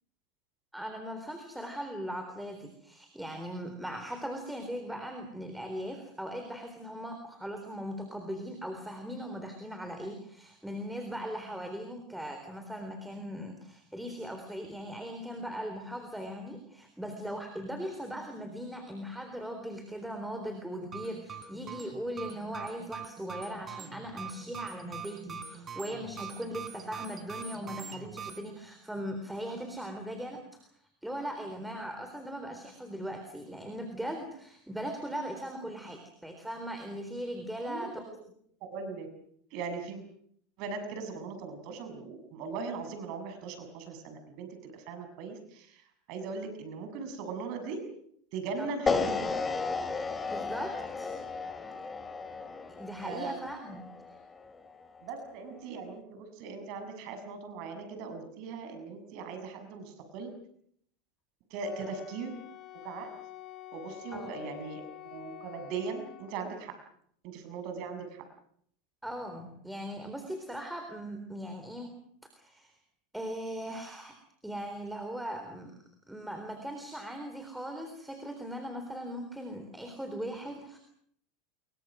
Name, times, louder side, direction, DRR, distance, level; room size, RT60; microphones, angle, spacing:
voice 1, 0.7-30.6 31.0-38.0 48.6-48.7 50.3-51.2 52.7-53.9 61.8-61.9 64.1-64.3 69.0-71.9 72.4-72.7 73.1-74.2 74.4-75.7 76.1-80.8, equal, 5° right, 6 dB, 3.8 m, -39 dB
sound 1, 20.8-28.4, right 7 dB, 25° right, 3.7 m, -44 dB
voice 2, 38.7-39.1 39.5-40.0 40.6-45.8 46.1-47.8 48.3-49.3 53.0-53.4 55.0-60.3 61.5-62.3 62.8-63.1 63.7-66.7 67.2-68.2, right 4 dB, 60° right, 7 dB, 6.8 m, -39 dB
sound 2, 48.9-55.0, left 4 dB, 20° left, 2.7 m, -34 dB
Wind instrument woodwind instrument, 61.6-66.5, left 13 dB, 40° left, 3.7 m, -48 dB
29.0 x 23.0 x 6.3 m, 0.68 s
supercardioid pair, 120°, 0 cm